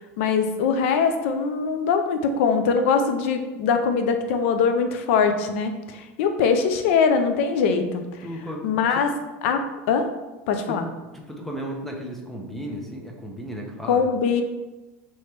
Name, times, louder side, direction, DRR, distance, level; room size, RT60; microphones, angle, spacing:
voice 1, 0.2-8.0 8.6-9.1 9.4-10.1 10.5-10.9 13.9-14.4, left 5 dB, 75° left, 7 dB, 0.5 m, -22 dB
voice 2, 8.2-9.0 10.7-14.1, equal, 5° left, 0 dB, 0.8 m, -35 dB
3.2 x 3.0 x 4.4 m, 1.1 s
supercardioid pair, 120°, 7 cm